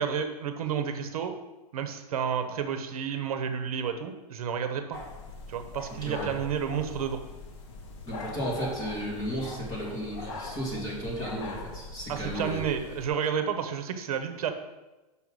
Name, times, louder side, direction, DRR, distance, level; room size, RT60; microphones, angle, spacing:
voice 1, 0.0-1.4 1.7-5.0 5.5-7.2 12.1-14.5, right 7 dB, 70° right, 7 dB, 0.9 m, -31 dB
sound 1, 4.9-13.1, left 3 dB, 50° left, 1.3 m, -41 dB
voice 2, 5.9-6.3 8.0-12.6, equal, 20° left, -4 dB, 2.2 m, -34 dB
5.6 x 5.6 x 6.2 m, 1.1 s
supercardioid pair, 165°, 20 cm